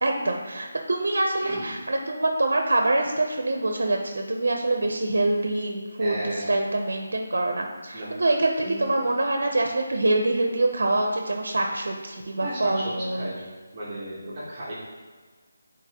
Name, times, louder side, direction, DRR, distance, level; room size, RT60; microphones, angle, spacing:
voice 1, 0.0-13.3, right 2 dB, 70° right, 3 dB, 0.7 m, -25 dB
voice 2, 1.4-1.7 6.0-6.5 7.9-8.2 8.6-8.9 12.4-13.4 13.7-14.7, right 1 dB, 15° right, -11 dB, 1.2 m, -34 dB
8.3 x 4.3 x 2.9 m, 1.5 s
figure-of-eight pair, 180°, 0 cm